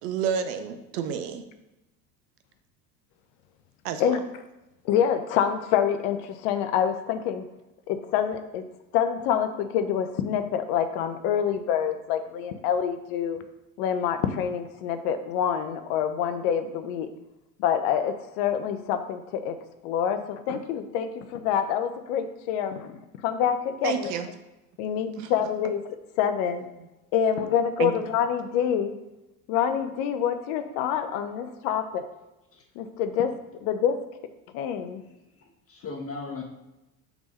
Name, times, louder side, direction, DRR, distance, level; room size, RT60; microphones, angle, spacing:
voice 1, 0.0-1.4 3.8-4.2 23.8-24.3 25.2-25.3 27.8-27.9, right 8 dB, 70° right, 9 dB, 0.8 m, -29 dB
voice 2, 4.8-7.5 7.9-8.6 8.9-13.4 13.8-17.1 17.6-19.5 19.8-23.0 23.2-24.1 24.8-26.7 27.1-28.9 29.5-32.1 32.8-33.3 33.6-34.0 34.5-35.0, left 8 dB, 60° left, 9 dB, 0.9 m, -26 dB
voice 3, 35.0-36.4, left 4 dB, 30° left, 0 dB, 1.7 m, -38 dB
6.0 x 3.6 x 5.5 m, 0.96 s
hypercardioid pair, 75°, 49 cm